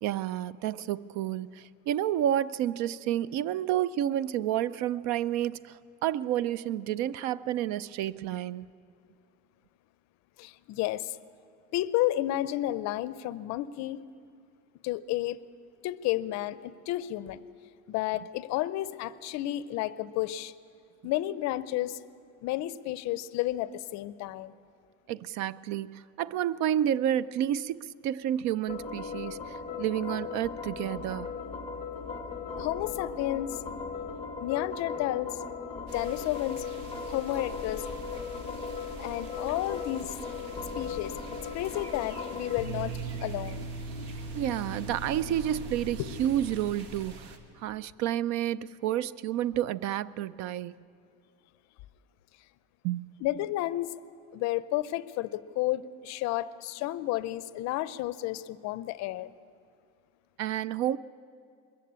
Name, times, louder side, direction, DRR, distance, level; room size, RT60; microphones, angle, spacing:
voice 1, 0.0-8.7 25.1-31.3 44.3-50.8 52.8-53.1 60.4-61.0, right 11 dB, 60° right, 0.5 m, -30 dB
voice 2, 10.4-11.2 11.7-14.0 14.8-15.4 15.8-17.4 17.9-20.5 21.0-22.0 22.4-24.5 32.6-33.6 34.4-35.4 35.9-36.7 37.1-37.9 39.0-40.1 40.7-41.2 41.5-42.9 43.2-43.6 46.0-46.1 53.2-53.9 54.3-59.3, left 15 dB, 60° left, 0.6 m, -31 dB
sound 1, 28.7-46.7, left 4 dB, 20° left, 1.2 m, -38 dB
sound 2, 35.9-47.4, right 2 dB, 85° right, 1.9 m, -47 dB
21.5 x 14.0 x 8.7 m
cardioid pair, 170°, 31 cm